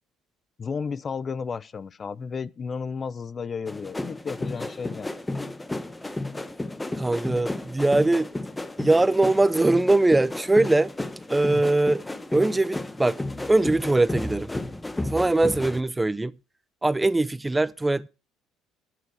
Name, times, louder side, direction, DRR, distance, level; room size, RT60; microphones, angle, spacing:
voice 1, 0.6-5.1 11.5-11.6, left 5 dB, 35° left, 0.6 m, -33 dB
sound 1, 3.7-15.8, left 2 dB, 10° left, 1.1 m, -33 dB
voice 2, 7.0-8.3 8.8-10.9 11.3-12.0 12.3-13.2 13.5-14.5 15.1-16.3 16.8-18.1, right 2 dB, 10° right, 0.6 m, -21 dB
13.0 x 9.2 x 4.8 m
supercardioid pair, 85°, 0 cm